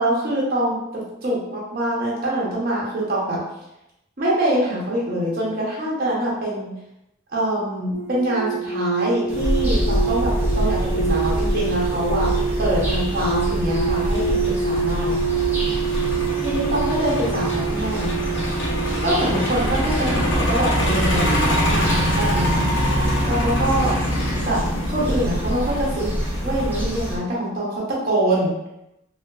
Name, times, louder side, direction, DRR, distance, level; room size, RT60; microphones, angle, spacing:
voice 1, 0.0-3.4 4.2-6.7 7.3-12.3 12.6-15.2 16.4-18.1 19.0-22.8 23.2-24.0 24.4-24.6 24.9-26.1 26.4-28.5, right 1 dB, 50° right, -5 dB, 0.9 m, -24 dB
sound 1, 7.9-25.3 25.5-25.9, right 6 dB, 85° right, 0.5 m, -28 dB
sound 2, 9.3-27.2, equal, 10° right, 0.6 m, -31 dB
Truck, 9.4-27.2, equal, 65° left, 0.8 m, -24 dB
3.4 x 2.5 x 2.3 m, 0.87 s
head